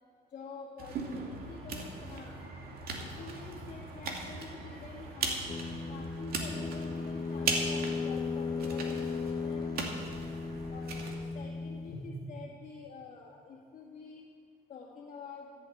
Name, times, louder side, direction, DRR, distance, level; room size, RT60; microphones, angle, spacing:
voice 1, 0.3-5.4 5.9-10.0 10.7-14.3 14.7-15.5, left 4 dB, 45° left, -4 dB, 2.2 m, -47 dB
sound 1, 0.8-11.2, right 3 dB, 60° right, 2.4 m, -39 dB
sound 2, 5.5-12.0, left 4 dB, 20° left, 0.5 m, -36 dB
15.0 x 7.8 x 8.7 m, 2.1 s
cardioid pair, 110°, 17 cm